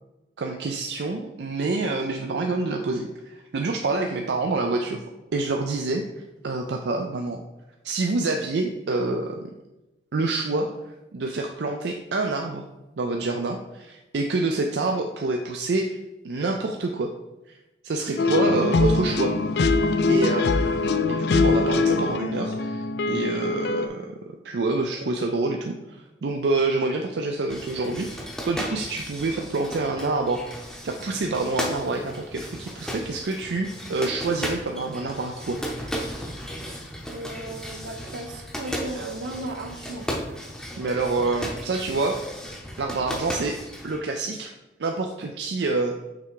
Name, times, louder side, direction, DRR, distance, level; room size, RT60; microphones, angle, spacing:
voice 1, 0.4-5.0 5.3-6.0 6.4-7.4 7.8-9.5 10.1-10.7 11.1-12.7 13.0-16.0 16.2-17.1 17.5-17.6 17.8-19.3 20.1-30.4 30.8-35.6 40.8-42.2 42.8-44.5 44.8-45.9, right 3 dB, 70° right, 3 dB, 0.4 m, -27 dB
sound 1, 18.2-23.9, left 3 dB, 60° left, 0.4 m, -22 dB
sound 2, 27.5-44.0, equal, 5° left, 0.7 m, -35 dB
voice 2, 37.1-40.1, right 2 dB, 85° right, 4 dB, 0.8 m, -35 dB
5.9 x 3.3 x 4.7 m, 1.0 s
head